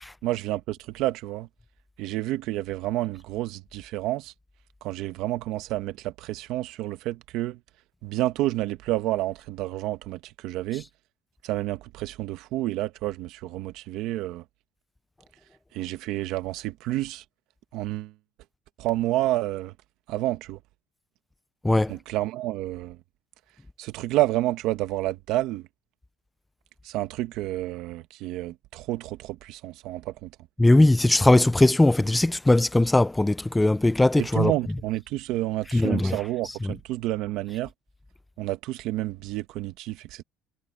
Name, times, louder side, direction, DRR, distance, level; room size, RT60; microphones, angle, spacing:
voice 1, 0.2-1.5 2.0-4.3 4.8-7.6 8.0-10.8 11.4-14.4 15.7-17.2 17.7-18.1 18.8-19.7 20.1-20.6 21.9-23.0 23.8-25.6 26.8-30.3 34.2-37.7 38.4-40.2, right 16 dB, 65° right, 1.2 m, -29 dB
voice 2, 21.6-21.9 30.6-34.5 35.7-36.2, left 2 dB, 5° left, 0.4 m, -19 dB
cardioid pair, 160°, 0 cm